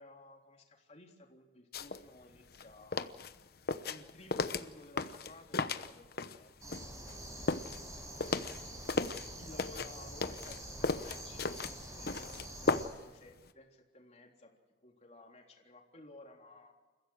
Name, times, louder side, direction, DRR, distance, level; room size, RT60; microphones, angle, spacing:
voice 1, 0.0-3.1 3.4-6.7 7.3-7.6 8.7-16.7, left 2 dB, 40° left, 1 dB, 3.7 m, -56 dB
sound 1, 1.7-2.0 2.4-6.4 6.7-9.3 9.6-13.1 13.4-13.5, left 3 dB, 60° left, 1.0 m, -35 dB
sound 2, 6.6-12.9, right 1 dB, 20° right, 5.8 m, -46 dB
29.5 x 15.5 x 6.3 m, 1.3 s
head